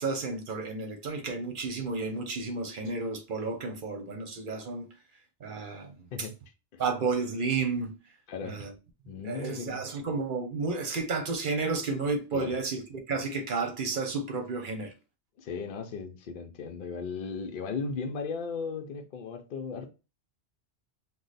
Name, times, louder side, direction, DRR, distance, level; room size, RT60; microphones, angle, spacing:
voice 1, 0.0-4.9 5.4-6.3 6.8-8.0 8.4-8.7 9.2-14.9, right 4 dB, 55° right, 0.7 m, -32 dB
voice 2, 8.3-8.6 9.1-9.8 12.3-12.6 15.4-19.9, left 5 dB, 60° left, 0.7 m, -36 dB
3.1 x 2.0 x 3.9 m
omnidirectional pair, 1.1 m